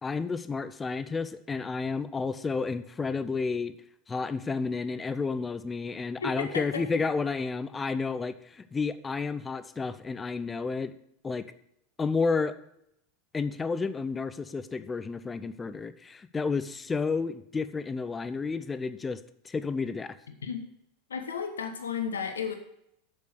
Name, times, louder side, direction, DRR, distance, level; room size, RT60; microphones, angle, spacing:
voice 1, 0.0-3.7 4.1-10.9 11.2-11.4 12.0-12.5 13.3-20.1, left 4 dB, 20° left, 13 dB, 0.8 m, -31 dB
voice 2, 6.2-6.8 20.4-20.6 21.1-22.5, left 6 dB, 80° left, 6 dB, 1.2 m, -33 dB
8.4 x 6.7 x 8.0 m, 0.77 s
hypercardioid pair, 85°, 0 cm